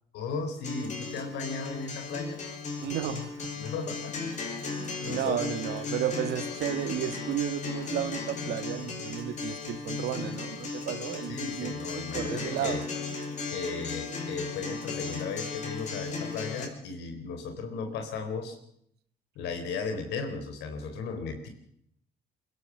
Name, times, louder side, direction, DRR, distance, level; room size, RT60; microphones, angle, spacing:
voice 1, 0.1-2.4 3.6-4.3 5.0-5.4 11.3-12.8 13.5-18.6 19.4-21.5, left 4 dB, 85° left, 6 dB, 3.7 m, -35 dB
Acoustic guitar, 0.6-16.7, left 4 dB, 45° left, 5.4 m, -36 dB
voice 2, 2.8-3.5 4.6-11.8 12.1-12.8, right 12 dB, 75° right, 12 dB, 1.8 m, -33 dB
22.5 x 16.0 x 7.1 m, 0.70 s
cardioid pair, 110°, 17 cm